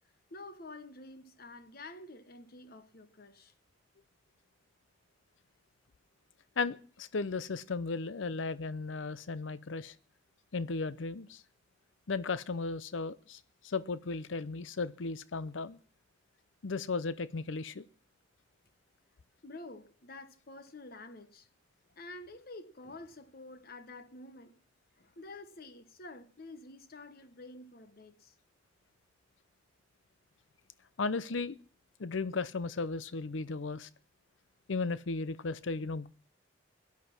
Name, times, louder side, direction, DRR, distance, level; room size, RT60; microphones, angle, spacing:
voice 1, 0.3-3.5 19.4-21.5 22.0-24.6 25.0-28.4, left 2 dB, 50° left, 1.1 m, -49 dB
voice 2, 6.6-9.9 10.5-11.4 12.1-15.8 16.6-17.9 31.0-31.6 32.0-33.9 34.7-36.1, left 4 dB, 85° left, 0.7 m, -35 dB
17.5 x 11.5 x 6.0 m
head